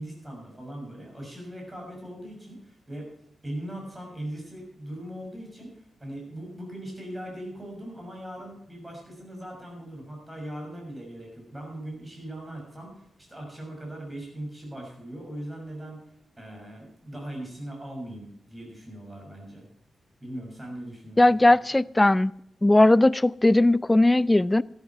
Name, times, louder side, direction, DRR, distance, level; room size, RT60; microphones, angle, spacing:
voice 1, 0.0-3.1 3.4-19.7 20.2-21.4, right 1 dB, 15° right, 0 dB, 6.4 m, -40 dB
voice 2, 21.2-22.3 22.6-24.6, left 2 dB, 15° left, 18 dB, 0.4 m, -18 dB
13.0 x 12.0 x 4.6 m, 0.76 s
wide cardioid pair, 135°, 0 cm